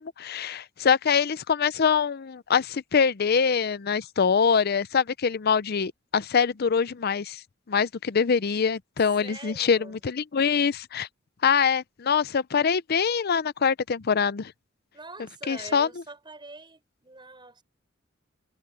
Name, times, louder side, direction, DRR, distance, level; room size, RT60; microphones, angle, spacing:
voice 1, 0.2-7.4 7.7-11.1 11.4-14.5 15.5-15.9, left 6 dB, 55° left, 0.6 m, -24 dB
voice 2, 9.2-10.0 14.9-17.6, right 2 dB, 25° right, 7.2 m, -44 dB
head